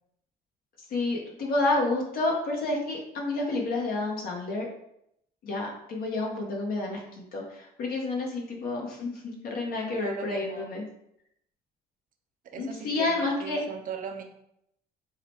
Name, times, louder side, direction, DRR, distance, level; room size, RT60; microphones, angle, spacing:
voice 1, 0.9-4.7 5.4-10.8 12.6-13.6, left 2 dB, 60° left, -1 dB, 1.0 m, -29 dB
voice 2, 10.0-10.7 12.4-14.2, right 6 dB, 55° right, 4 dB, 0.7 m, -39 dB
4.8 x 2.2 x 4.3 m, 0.76 s
cardioid pair, 110°, 17 cm